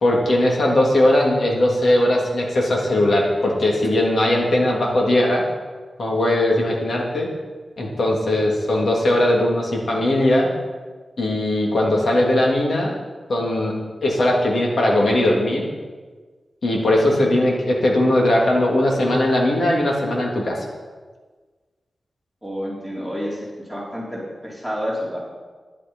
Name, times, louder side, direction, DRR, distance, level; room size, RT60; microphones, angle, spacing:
voice 1, 0.0-5.4 6.0-7.3 7.8-10.5 11.2-12.9 13.3-13.7 14.0-15.7 16.6-20.6, left 1 dB, 65° left, -2 dB, 3.1 m, -19 dB
voice 2, 22.4-25.2, equal, 10° left, -5 dB, 3.6 m, -29 dB
11.5 x 11.0 x 5.6 m, 1.4 s
wide cardioid pair, 85°, 0 cm